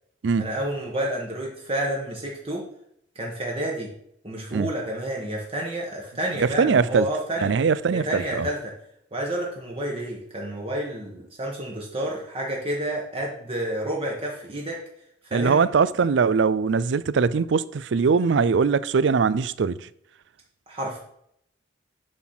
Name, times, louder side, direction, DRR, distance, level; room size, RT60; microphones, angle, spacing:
voice 1, 0.4-2.7 3.1-3.9 4.2-7.5 7.9-8.7 9.1-14.8 15.3-15.6 20.7-21.0, right 1 dB, 30° right, 1.5 m, -30 dB
voice 2, 6.4-7.1 7.4-8.5 15.3-19.8, right 5 dB, 70° right, 0.4 m, -21 dB
9.5 x 4.0 x 5.9 m
head